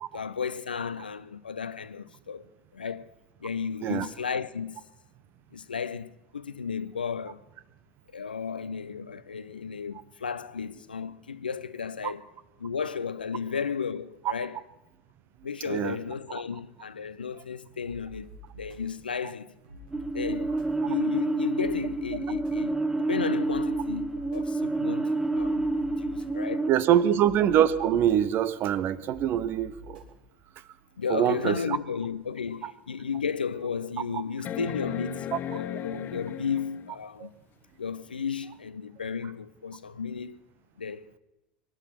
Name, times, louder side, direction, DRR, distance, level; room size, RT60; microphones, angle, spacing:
voice 1, 0.1-2.5 2.7-3.1 3.4-4.8 5.5-7.4 8.1-12.2 12.6-14.6 15.4-19.5 20.1-26.7 27.0-27.2 31.0-37.3 37.8-40.4 40.8-41.1, left 6 dB, 85° left, 0.6 m, -34 dB
sound 1, 17.8-30.2, left 1 dB, 70° right, 3.1 m, -50 dB
sound 2, 19.9-26.7, right 2 dB, 10° right, 0.9 m, -28 dB
voice 2, 26.7-30.0 31.1-31.8 37.2-37.3, right 10 dB, 45° right, 0.9 m, -24 dB
sound 3, 32.3-32.4 33.0-33.1 34.4-36.9 38.6-38.7, left 12 dB, 40° left, 0.6 m, -36 dB
23.0 x 10.5 x 5.8 m
figure-of-eight pair, 70°, 5 cm